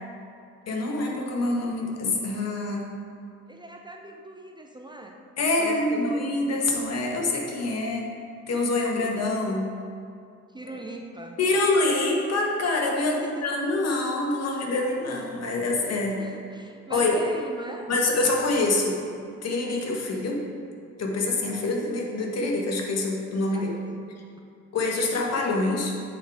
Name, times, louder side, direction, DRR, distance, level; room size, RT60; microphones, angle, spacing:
voice 1, 0.7-2.9 5.4-8.0 8.5-9.7 11.4-13.1 13.4-16.2 16.9-17.2 17.9-19.0 19.4-20.4 21.0-23.8 24.7-25.9, left 2 dB, 60° left, 0 dB, 1.3 m, -25 dB
voice 2, 3.5-6.5 10.5-11.4 13.0-13.6 16.2-17.9 23.5-24.0, right 2 dB, 15° right, 2 dB, 0.5 m, -40 dB
8.2 x 3.8 x 4.6 m, 2.4 s
cardioid pair, 90°, 30 cm